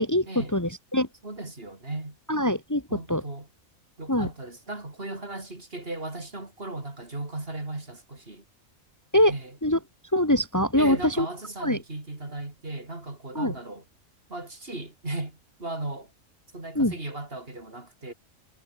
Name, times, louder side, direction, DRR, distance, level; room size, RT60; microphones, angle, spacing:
voice 1, 0.0-1.1 2.3-2.8 3.1-3.2 4.1-4.3 9.1-9.3 9.6-9.8 10.1-11.3 11.6-11.8 13.4-13.5 16.8-16.9, left 1 dB, 15° left, 1.9 m, -23 dB
voice 2, 1.2-2.2 2.9-3.5 4.0-8.4 9.3-9.6 10.8-13.8 14.3-16.1 16.5-18.1, right 2 dB, 45° right, 4.2 m, -36 dB
omnidirectional pair, 1.4 m